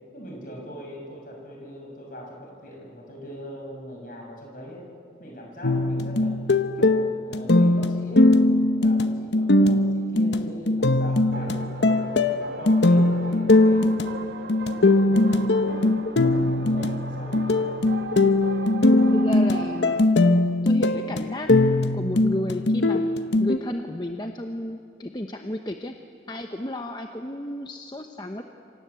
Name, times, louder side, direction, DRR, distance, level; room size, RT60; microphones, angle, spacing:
voice 1, 0.1-4.9 5.2-6.4 6.7-12.1 12.6-15.8 16.2-17.7, equal, 50° left, 0 dB, 6.4 m, -41 dB
sound 1, 5.6-23.6, left 2 dB, 85° left, 1.0 m, -21 dB
sound 2, 11.3-20.0, right 3 dB, 75° right, 1.4 m, -37 dB
voice 2, 19.1-20.0 20.6-21.5 21.9-23.1 23.4-25.9 26.3-28.4, left 1 dB, 25° left, 5 dB, 1.0 m, -32 dB
27.5 x 25.5 x 8.2 m, 2.5 s
head